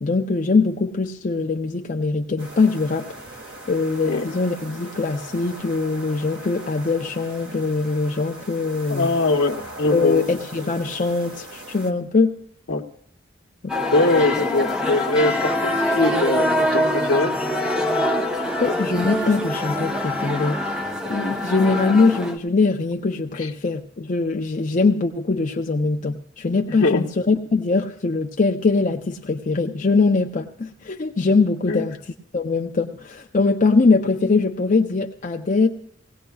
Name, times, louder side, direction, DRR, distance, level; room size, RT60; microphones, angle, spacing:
voice 1, 0.0-3.1 3.7-9.1 9.9-12.4 13.6-13.7 18.6-20.6 21.1-32.0 32.3-35.7, left 3 dB, 40° left, 3 dB, 0.5 m, -22 dB
sound 1, 2.4-11.9, right 1 dB, 70° right, 1.8 m, -40 dB
voice 2, 8.9-10.3 12.7-12.9 13.9-17.3 23.4-23.5 26.7-27.1 31.7-31.9, left 2 dB, 80° left, 0 dB, 0.8 m, -22 dB
sound 2, 13.7-22.4, left 1 dB, 5° right, 0.7 m, -24 dB
18.5 x 17.5 x 2.3 m, 0.74 s
head